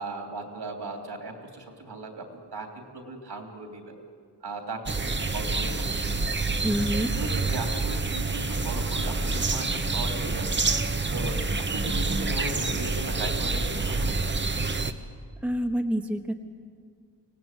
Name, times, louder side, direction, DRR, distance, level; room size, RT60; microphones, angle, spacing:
voice 1, 0.0-3.9 4.4-6.3 7.1-10.6 11.1-14.2, right 2 dB, 70° right, 4 dB, 3.1 m, -37 dB
sound 1, 4.9-14.9, right 3 dB, 25° right, 0.9 m, -27 dB
voice 2, 6.6-7.1 15.4-16.4, equal, 5° right, 4 dB, 1.2 m, -27 dB
24.5 x 17.5 x 9.0 m, 2.2 s
wide cardioid pair, 120°, 42 cm